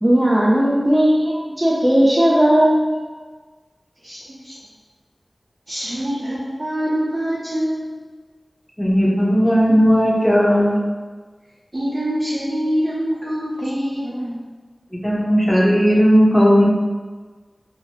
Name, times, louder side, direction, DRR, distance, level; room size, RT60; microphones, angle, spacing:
voice 1, 0.0-2.9, equal, 15° right, -7 dB, 0.5 m, -16 dB
voice 2, 4.0-4.6 5.7-8.0 11.7-14.4, equal, 50° right, -11 dB, 0.9 m, -25 dB
voice 3, 8.8-10.8 15.0-16.7, equal, 10° left, -5 dB, 0.8 m, -15 dB
2.8 x 2.7 x 2.9 m, 1.4 s
wide cardioid pair, 50°, 0 cm